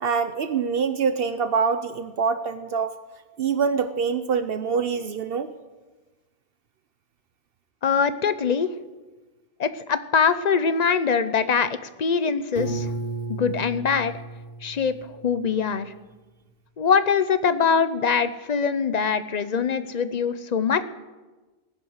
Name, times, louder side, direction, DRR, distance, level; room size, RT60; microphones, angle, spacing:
voice 1, 0.0-2.9 3.4-5.5, right 6 dB, 70° right, 11 dB, 0.9 m, -25 dB
voice 2, 7.8-8.7 9.6-12.9 13.3-14.1 14.6-14.9 15.2-15.9 16.8-20.8, left 6 dB, 45° left, 13 dB, 0.8 m, -23 dB
Piano, 12.6-15.5, right 2 dB, 70° left, 3.1 m, -33 dB
18.0 x 10.0 x 6.5 m, 1.2 s
omnidirectional pair, 1.1 m